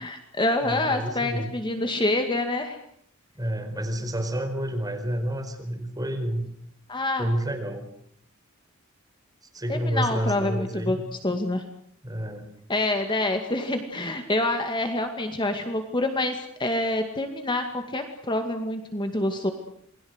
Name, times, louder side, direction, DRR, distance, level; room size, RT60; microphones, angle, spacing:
voice 1, 0.0-2.8 6.9-7.3 9.7-11.6 12.7-19.5, left 2 dB, 20° left, 6 dB, 2.2 m, -27 dB
voice 2, 0.6-1.5 3.4-6.5 7.2-7.9 9.5-11.0 12.0-12.5, right 1 dB, 15° right, 5 dB, 4.9 m, -29 dB
28.5 x 21.5 x 8.1 m, 0.69 s
head